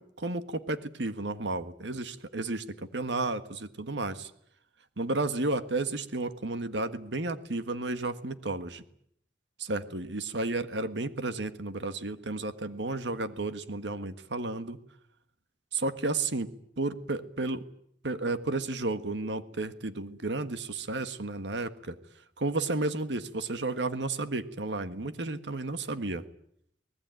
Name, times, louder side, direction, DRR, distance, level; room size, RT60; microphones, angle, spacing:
voice 1, 0.0-2.6 2.9-4.3 5.0-8.8 9.6-14.8 15.7-16.5 16.8-17.6 18.0-22.0 22.4-26.2, right 2 dB, 80° right, 11 dB, 1.6 m, -32 dB
25.0 x 19.5 x 9.1 m, 0.70 s
head